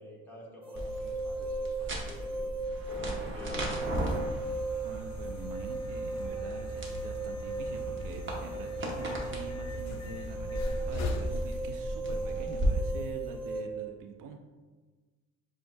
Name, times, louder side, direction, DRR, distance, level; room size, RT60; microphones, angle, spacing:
voice 1, 0.0-2.5 2.9-4.2, equal, 5° left, -5 dB, 1.2 m, -49 dB
sound 1, 0.6-13.6, right 2 dB, 15° right, 0.6 m, -37 dB
sound 2, 0.8-12.7, equal, 35° right, 1.0 m, -38 dB
sound 3, 3.8-13.1, left 1 dB, 50° left, 0.6 m, -41 dB
voice 2, 4.8-14.4, right 5 dB, 65° right, 5 dB, 0.5 m, -45 dB
7.1 x 2.5 x 2.5 m, 1.3 s
cardioid pair, 125°, 34 cm